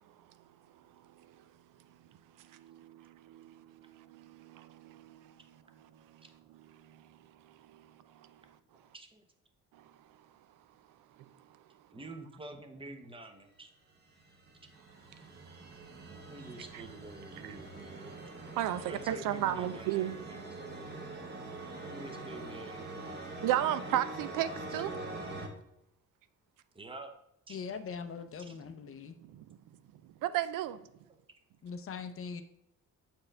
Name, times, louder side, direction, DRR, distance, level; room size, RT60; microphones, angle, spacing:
voice 1, 2.4-7.2 7.4-8.4 9.8-9.9 11.2-11.3 17.4-17.5 18.6-20.1 23.4-24.9 29.2-29.6 30.0-30.8, right 12 dB, 80° right, 13 dB, 0.5 m, -35 dB
voice 2, 11.9-13.7 16.3-18.1 18.8-20.9 21.8-23.5 26.7-27.1 27.5-27.6 28.4-28.6 31.1-31.2, right 2 dB, 15° right, 6 dB, 0.7 m, -47 dB
sound 1, 13.9-25.5, right 2 dB, 30° right, 1.0 m, -44 dB
voice 3, 27.5-29.1 31.6-32.4, left 5 dB, 45° left, 9 dB, 0.5 m, -41 dB
7.2 x 4.4 x 3.3 m, 0.79 s
cardioid pair, 125°, 31 cm